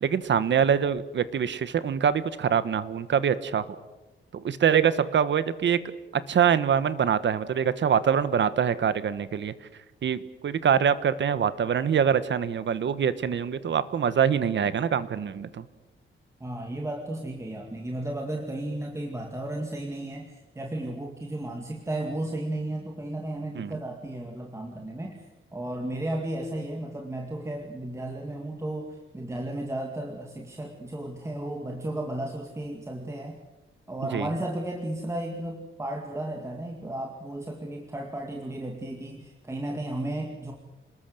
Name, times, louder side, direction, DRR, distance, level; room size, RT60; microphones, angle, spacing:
voice 1, 0.0-3.6 4.3-5.8 6.3-9.5 10.0-15.6 23.5-23.7 34.1-34.3, right 8 dB, 60° right, 14 dB, 1.3 m, -24 dB
voice 2, 16.4-25.2 25.5-33.4 33.9-40.5, right 1 dB, 15° right, 1 dB, 2.1 m, -34 dB
28.0 x 20.0 x 7.8 m, 1.1 s
wide cardioid pair, 175°, 21 cm